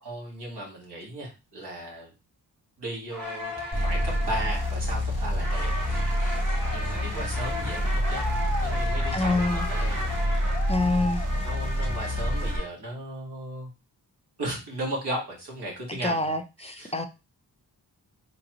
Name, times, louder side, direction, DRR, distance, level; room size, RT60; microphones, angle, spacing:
voice 1, 0.0-2.1 2.8-5.7 5.9-6.2 6.7-10.1 11.4-13.7 14.4-16.3 16.6-17.1, right 1 dB, 75° right, 2.0 m, -36 dB
sound 1, 3.1-12.7, left 1 dB, 50° right, 2.4 m, -35 dB
sound 2, 3.7-12.6, equal, 35° right, 2.4 m, -27 dB
voice 2, 9.1-9.7 10.7-11.2 16.0-17.1, left 2 dB, 15° left, 0.6 m, -26 dB
3.9 x 3.1 x 3.0 m
cardioid pair, 55°, 40 cm